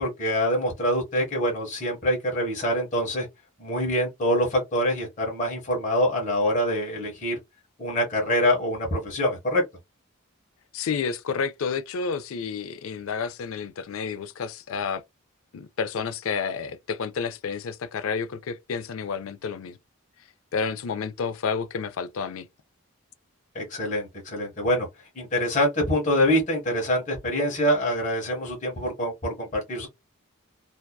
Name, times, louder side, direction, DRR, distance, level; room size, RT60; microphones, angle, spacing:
voice 1, 0.0-3.3 3.6-7.4 7.8-9.6 23.5-24.9 25.2-29.9, equal, 35° left, 1.1 m, -25 dB
voice 2, 10.7-15.0 15.5-19.8 20.5-22.5, left 5 dB, 70° left, 0.4 m, -30 dB
2.7 x 2.2 x 2.2 m
head